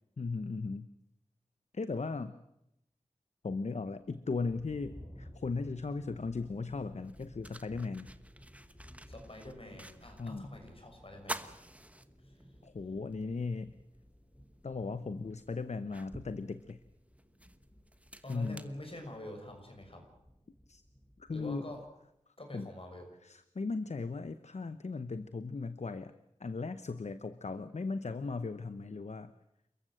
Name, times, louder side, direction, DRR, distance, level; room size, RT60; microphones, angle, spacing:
voice 1, 0.2-0.9 1.7-2.3 3.4-8.1 10.2-10.5 12.6-13.7 14.6-16.8 18.3-18.6 20.7-20.8 21.2-21.7 22.5-22.7 23.2-26.1 26.4-29.3, left 4 dB, 65° left, 12 dB, 0.8 m, -37 dB
sound 1, 4.0-22.0, equal, 20° left, 6.2 m, -57 dB
sound 2, 7.0-10.4 10.7-10.8 11.2-12.7 13.1-13.2 14.6-14.7 15.3-19.5, right 1 dB, 10° right, 1.2 m, -48 dB
voice 2, 9.1-11.5 12.2-12.3 18.2-20.0 21.3-21.8 22.4-23.1, left 1 dB, 45° left, 4 dB, 6.4 m, -46 dB
29.5 x 14.5 x 7.8 m, 0.83 s
wide cardioid pair, 50°, 13 cm